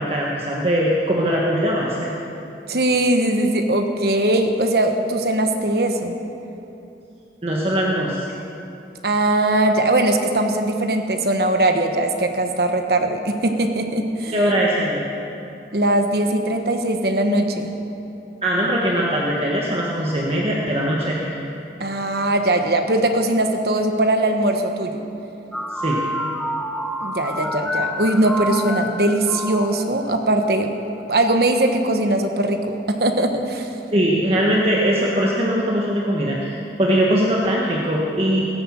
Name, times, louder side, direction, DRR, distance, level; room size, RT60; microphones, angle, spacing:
voice 1, 0.0-2.2 7.4-8.2 14.3-15.0 18.4-21.3 25.7-26.0 33.9-38.5, equal, 35° right, -4 dB, 1.5 m, -21 dB
voice 2, 2.7-6.2 9.0-14.4 15.7-17.7 21.8-25.0 27.0-30.7 31.1-33.7, right 1 dB, 60° right, 5 dB, 1.3 m, -20 dB
sound 1, 25.5-30.6, equal, 5° left, 0.5 m, -28 dB
18.0 x 10.5 x 7.5 m, 2.8 s
head